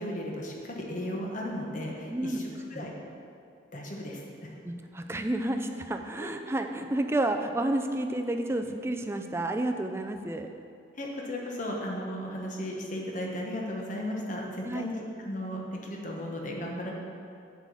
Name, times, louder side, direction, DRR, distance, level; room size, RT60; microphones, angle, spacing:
voice 1, 0.0-2.4 2.7-2.9 3.7-4.5 6.2-6.3 11.0-16.9, left 1 dB, 45° left, -1 dB, 1.1 m, -35 dB
voice 2, 2.1-2.4 2.7-2.9 4.6-10.5 14.6-14.9, right 1 dB, 15° right, 5 dB, 0.4 m, -30 dB
7.7 x 4.8 x 6.8 m, 2.5 s
head